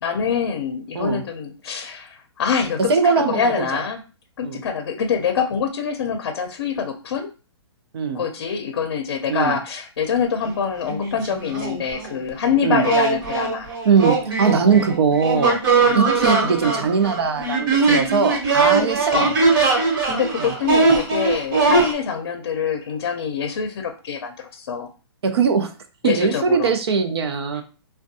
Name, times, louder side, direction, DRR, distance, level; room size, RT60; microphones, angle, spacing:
voice 1, 0.0-4.0 4.4-7.3 8.1-13.7 14.6-14.9 15.8-16.0 19.1-19.3 19.8-24.9 26.0-26.7 27.5-27.6, left 6 dB, 60° left, 5 dB, 0.6 m, -25 dB
voice 2, 2.9-3.8 4.4-4.6 7.9-8.2 9.3-9.6 12.6-12.9 13.8-15.6 15.9-19.3 20.4-20.5 25.2-25.7 26.0-27.6, right 6 dB, 65° right, 7 dB, 0.6 m, -20 dB
sound 1, 10.4-10.5 10.8-12.1 12.8-21.9, right 3 dB, 50° right, 1.2 m, -20 dB
3.4 x 2.2 x 2.6 m, 0.34 s
hypercardioid pair, 165°, 14 cm